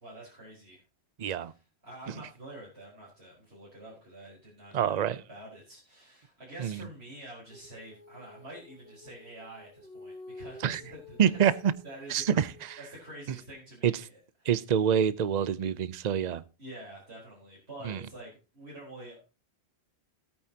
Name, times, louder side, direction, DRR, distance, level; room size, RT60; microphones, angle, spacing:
voice 1, 0.0-0.8 1.2-11.4 11.8-12.4 12.8-14.5 16.6-19.2, right 1 dB, 75° right, 4.6 m, -47 dB
voice 2, 1.2-1.5 4.7-5.2 6.6-6.8 10.6-10.8 11.2-11.7 12.1-12.8 13.8-13.9 14.5-16.4 17.8-18.0, right 8 dB, 45° right, 0.7 m, -26 dB
Female singing, 7.5-13.2, left 2 dB, 70° left, 3.0 m, -51 dB
17.0 x 8.9 x 2.8 m
omnidirectional pair, 1.1 m